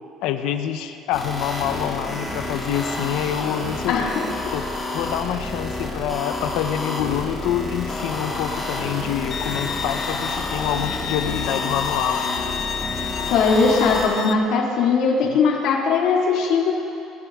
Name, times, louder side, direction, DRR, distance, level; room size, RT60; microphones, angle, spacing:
voice 1, 0.2-4.1 4.4-4.6 4.9-12.6, left 9 dB, 75° left, 8 dB, 0.8 m, -26 dB
sound 1, 1.1-14.1, left 2 dB, 10° left, 1.7 m, -29 dB
voice 2, 3.9-4.2 13.3-16.7, left 5 dB, 60° left, -1 dB, 2.2 m, -19 dB
Bowed string instrument, 9.3-14.3, left 8 dB, 45° left, 0.5 m, -30 dB
20.0 x 11.5 x 3.6 m, 2.8 s
cardioid pair, 175°, 0 cm